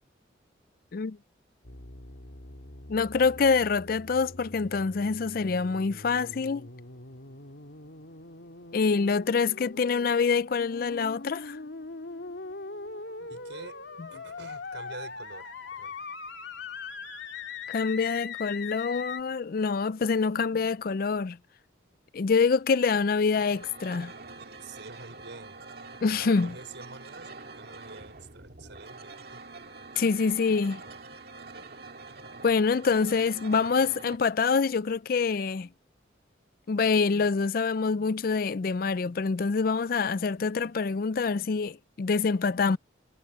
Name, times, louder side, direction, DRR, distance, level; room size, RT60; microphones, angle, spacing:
sound 1, 1.6-19.2, left 4 dB, 70° left, 2.6 m, -42 dB
voice 1, 2.9-6.7 8.7-11.6 17.7-21.4 22.1-24.1 26.0-26.5 30.0-30.8 32.4-35.7 36.7-42.8, left 5 dB, 50° left, 0.4 m, -26 dB
voice 2, 13.3-13.8 14.1-16.0 24.6-25.6 26.0-29.5, right 3 dB, 70° right, 5.3 m, -47 dB
sound 2, 23.4-34.2, right 3 dB, 55° right, 2.2 m, -45 dB
head